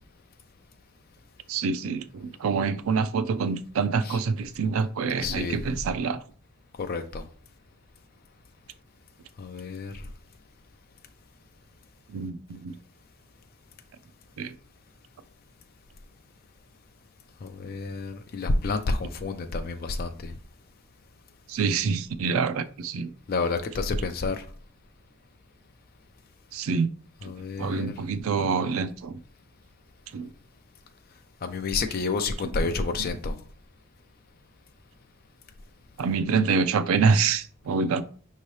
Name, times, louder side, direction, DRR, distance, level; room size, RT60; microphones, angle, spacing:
voice 1, 1.5-6.2 12.1-12.7 14.4-14.5 21.5-23.1 26.5-26.9 27.6-29.2 30.1-30.3 32.6-32.7 36.0-38.0, right 5 dB, 80° right, 0.4 m, -26 dB
voice 2, 5.2-5.6 6.8-7.2 9.4-10.0 17.4-20.3 23.3-24.4 27.2-27.9 31.4-33.4, left 3 dB, 45° left, 0.4 m, -29 dB
5.4 x 2.8 x 3.1 m
head